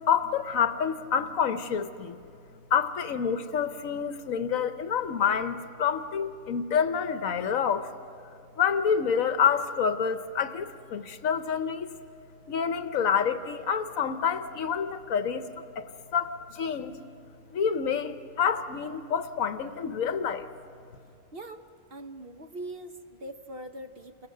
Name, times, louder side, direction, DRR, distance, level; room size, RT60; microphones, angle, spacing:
voice 1, 0.0-2.2 2.7-7.9 8.6-11.9 12.5-17.0 17.5-20.5, left 7 dB, 75° left, 10 dB, 1.2 m, -28 dB
voice 2, 21.3-24.3, right 1 dB, 50° right, 7 dB, 1.0 m, -42 dB
29.5 x 21.5 x 6.6 m, 2.6 s
omnidirectional pair, 1.5 m